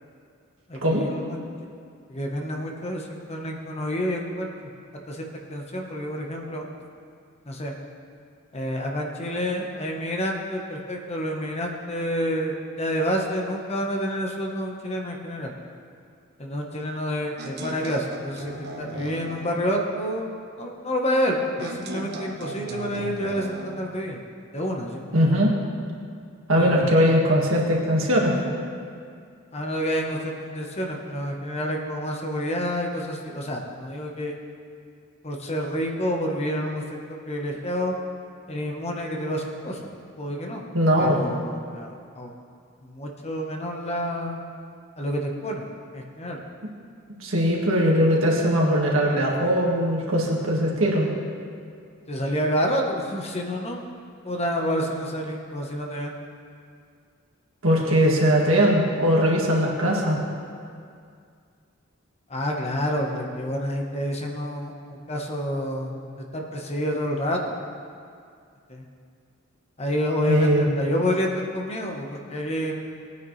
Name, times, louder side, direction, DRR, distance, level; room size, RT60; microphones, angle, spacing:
voice 1, 0.7-1.4 2.1-4.7 5.1-6.7 7.5-7.7 8.5-15.5 16.4-24.2 24.5-25.4 26.5-26.9 29.5-34.3 35.2-37.9 38.5-39.9 40.2-40.6 41.0-42.3 42.8-44.4 45.0-45.7 45.9-46.4 52.1-53.8 54.2-56.1 57.9-58.0 62.3-65.9 66.3-67.5 68.7-68.8 69.8-72.8, equal, 30° left, 1 dB, 1.2 m, -28 dB
sound 1, 17.4-19.6 21.6-23.8, right 1 dB, 50° right, 1.1 m, -37 dB
voice 2, 25.1-25.6 26.5-28.4 40.7-41.2 47.2-51.1 57.6-60.2 70.3-70.7, equal, 70° right, -2 dB, 1.9 m, -20 dB
19.0 x 9.5 x 3.3 m, 2.3 s
head